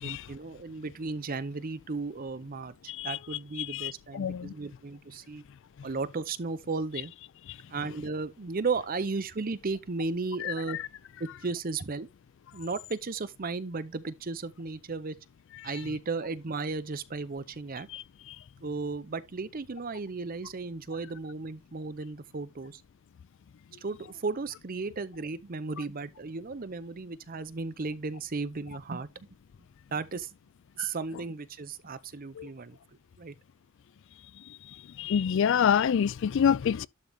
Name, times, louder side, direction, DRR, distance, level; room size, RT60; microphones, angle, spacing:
voice 1, 0.0-5.4 5.8-7.1 7.7-10.8 11.2-12.1 12.5-15.2 15.6-17.9 18.6-22.8 23.8-29.1 29.9-30.3 30.8-32.8 33.2-33.4, right 4 dB, 40° right, 0.6 m, -35 dB
voice 2, 3.6-4.5 10.4-10.5 17.9-18.0 30.8-30.9 32.4-32.5 35.0-36.9, left 8 dB, 60° left, 0.3 m, -27 dB
11.5 x 3.9 x 3.5 m
head